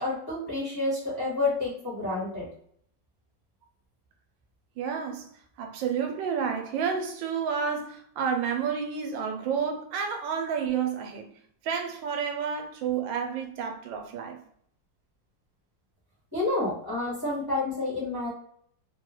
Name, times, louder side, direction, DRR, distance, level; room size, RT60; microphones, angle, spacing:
voice 1, 0.0-2.5 16.3-18.3, left 2 dB, 15° left, 1.0 m, -29 dB
voice 2, 4.8-5.3 5.6-11.3 11.6-14.4, right 7 dB, 85° right, 1.3 m, -30 dB
3.5 x 2.2 x 3.0 m
omnidirectional pair, 2.0 m